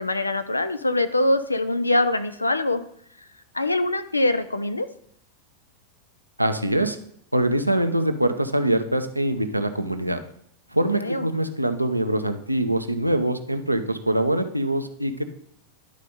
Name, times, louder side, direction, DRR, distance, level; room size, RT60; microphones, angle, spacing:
voice 1, 0.0-2.8 3.5-4.9 10.9-11.3, left 2 dB, 80° left, 11 dB, 0.5 m, -23 dB
voice 2, 6.4-7.0 7.3-10.2 10.7-15.2, right 1 dB, 85° right, 8 dB, 0.6 m, -23 dB
10.5 x 4.2 x 5.2 m, 0.66 s
figure-of-eight pair, 90°, 0 cm